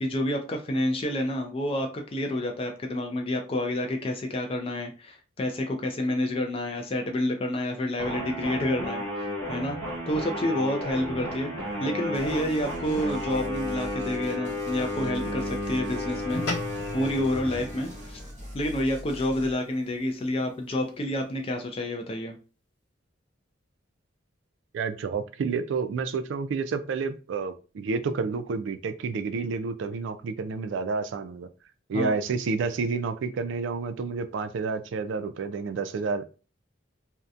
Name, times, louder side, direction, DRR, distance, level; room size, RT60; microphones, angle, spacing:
voice 1, 0.0-9.8 10.1-11.5 11.8-16.5 16.9-18.2 18.5-22.4 31.9-32.1, left 1 dB, 30° left, 4 dB, 0.3 m, -29 dB
sound 1, 8.0-18.2, left 1 dB, 10° left, 0.9 m, -33 dB
sound 2, 12.1-19.5, equal, 35° right, 0.8 m, -43 dB
sound 3, 16.3-20.9, left 2 dB, 70° left, 1.0 m, -39 dB
voice 2, 24.7-31.5 31.9-36.3, right 4 dB, 70° right, 10 dB, 0.3 m, -30 dB
2.6 x 2.1 x 2.3 m, 0.34 s
head